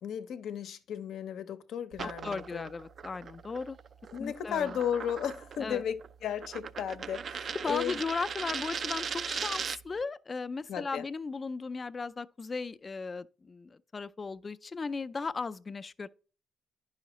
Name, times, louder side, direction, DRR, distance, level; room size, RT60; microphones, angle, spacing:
voice 1, 0.0-2.7 4.1-8.0 10.7-11.0, left 9 dB, 75° left, 0.7 m, -35 dB
sound 1, 1.9-10.0, right 6 dB, 50° right, 0.4 m, -39 dB
voice 2, 2.0-3.8 4.2-4.8 5.6-5.8 7.5-16.1, left 4 dB, 30° left, 0.4 m, -36 dB
9.9 x 5.6 x 3.0 m
cardioid pair, 90°, 0 cm